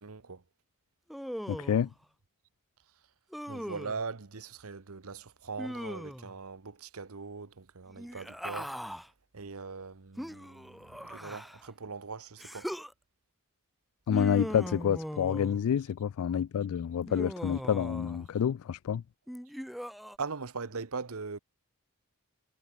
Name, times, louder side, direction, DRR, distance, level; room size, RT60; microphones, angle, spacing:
voice 1, 0.0-0.4 3.5-8.8 9.3-12.7 16.3-16.4 20.2-21.4, right 4 dB, 75° right, 1.0 m, -41 dB
Human voice, 1.1-1.9 3.3-4.0 5.6-6.4 7.9-9.1 10.2-11.7 12.4-12.9 14.1-15.7 17.1-18.3 19.3-20.2, equal, ahead, 1.4 m, -39 dB
voice 2, 1.5-1.9 14.1-19.0, left 8 dB, 70° left, 0.3 m, -28 dB
head